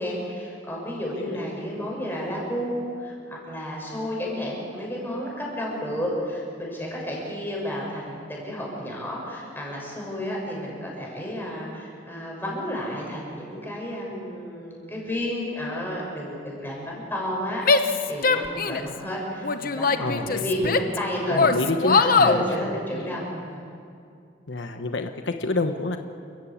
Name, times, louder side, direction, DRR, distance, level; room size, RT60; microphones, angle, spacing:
voice 1, 0.0-21.4 21.9-23.6, equal, 10° left, -3 dB, 6.9 m, -31 dB
Female speech woman speaking / Yell, 17.6-19.0 19.4-21.0 21.3-22.4, left 4 dB, 50° left, 1.0 m, -21 dB
voice 2, 20.0-20.8 21.3-22.4 22.9-23.0 24.5-26.0, left 2 dB, 80° left, 6 dB, 1.1 m, -28 dB
29.5 x 15.0 x 8.8 m, 2.5 s
head